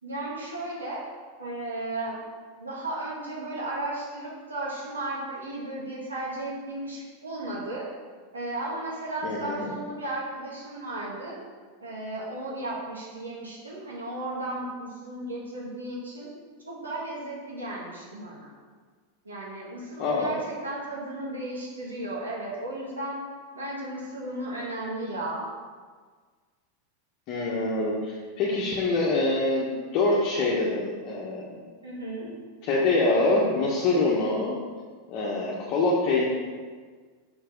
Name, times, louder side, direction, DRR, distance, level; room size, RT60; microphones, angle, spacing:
voice 1, 0.0-1.0 1.4-2.2 2.6-7.9 8.3-11.4 11.8-16.3 16.7-18.5 19.2-23.2 23.5-25.5 31.8-32.3, right 2 dB, 85° right, -4 dB, 1.9 m, -34 dB
voice 2, 9.2-9.7 20.0-20.4 27.3-31.6 32.7-34.6 35.1-36.2, left 2 dB, 45° left, -5 dB, 1.1 m, -25 dB
5.7 x 4.5 x 5.3 m, 1.5 s
hypercardioid pair, 90°, 0 cm